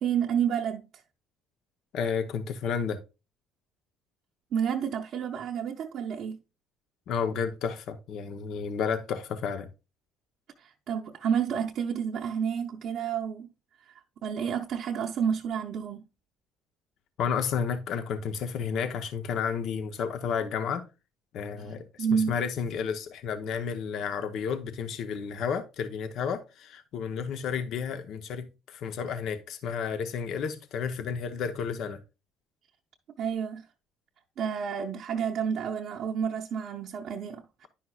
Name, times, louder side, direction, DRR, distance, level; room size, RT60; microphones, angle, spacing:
voice 1, 0.0-0.8 4.5-6.4 10.6-13.5 13.8-16.0 22.0-22.3 33.2-33.7 34.4-37.7, right 7 dB, 60° right, 0.6 m, -30 dB
voice 2, 1.9-3.0 7.1-9.7 17.2-20.8 21.3-32.0, left 6 dB, 65° left, 0.8 m, -31 dB
10.0 x 5.7 x 2.3 m
supercardioid pair, 75°, 0 cm